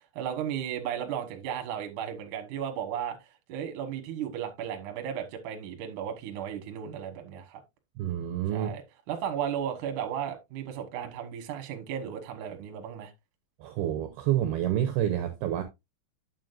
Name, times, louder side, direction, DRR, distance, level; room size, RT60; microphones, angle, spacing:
voice 1, 0.2-3.2 3.5-7.6 8.5-8.8 9.1-13.1, right 9 dB, 65° right, 2.2 m, -34 dB
voice 2, 8.0-8.7 13.6-15.6, right 11 dB, 80° right, 2.3 m, -28 dB
9.4 x 7.5 x 2.5 m
omnidirectional pair, 5.5 m